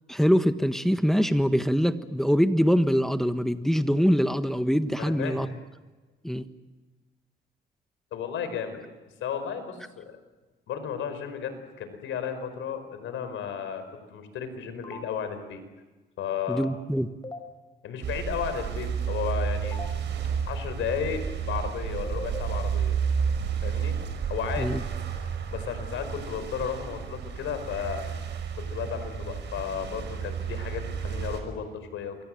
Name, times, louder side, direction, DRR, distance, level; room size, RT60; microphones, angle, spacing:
voice 1, 0.1-5.6 6.2-6.5 16.5-17.1 24.6-24.8, equal, ahead, 9 dB, 1.4 m, -24 dB
voice 2, 5.0-5.5 8.1-8.8 9.2-10.2 10.7-13.8 14.1-15.6 16.2-16.7 17.8-19.8 20.4-23.0 23.6-24.0 24.3-24.8 25.5-28.0 28.5-32.2, left 7 dB, 80° left, 9 dB, 5.0 m, -33 dB
sound 1, 14.8-15.0 17.2-17.4 19.6-19.9 22.0-22.4, left 3 dB, 20° left, 5.8 m, -37 dB
sound 2, 18.0-31.4, right 7 dB, 65° right, 5.6 m, -31 dB
28.0 x 23.5 x 7.8 m, 1.2 s
cardioid pair, 90°, 20 cm